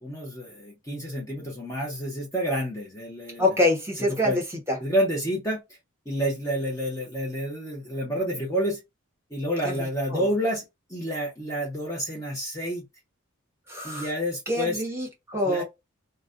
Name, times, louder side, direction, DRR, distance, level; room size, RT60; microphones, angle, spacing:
voice 1, 0.0-3.6 4.0-4.4 4.8-5.6 6.1-8.8 9.3-10.6 10.9-12.8 13.8-14.8 15.4-15.6, equal, 15° left, 0.8 m, -29 dB
voice 2, 3.4-4.4 10.1-10.2 13.7-14.0 14.5-15.6, left 1 dB, 10° right, 1.0 m, -25 dB
2.3 x 2.2 x 2.4 m
head